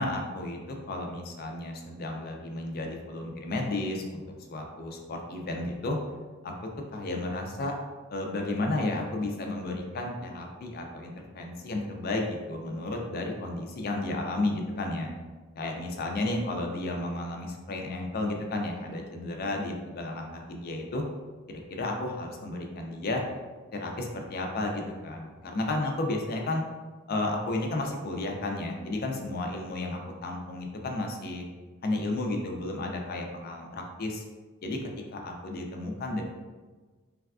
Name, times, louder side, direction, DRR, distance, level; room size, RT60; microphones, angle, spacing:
voice 1, 0.0-4.2 4.5-6.0 6.4-6.5 6.9-7.7 8.1-15.1 15.6-21.0 21.5-23.2 23.7-26.6 27.1-31.5 31.8-34.2 34.6-34.8 35.1-36.2, left 2 dB, 45° left, 2 dB, 0.4 m, -32 dB
3.2 x 2.3 x 2.3 m, 1.3 s
head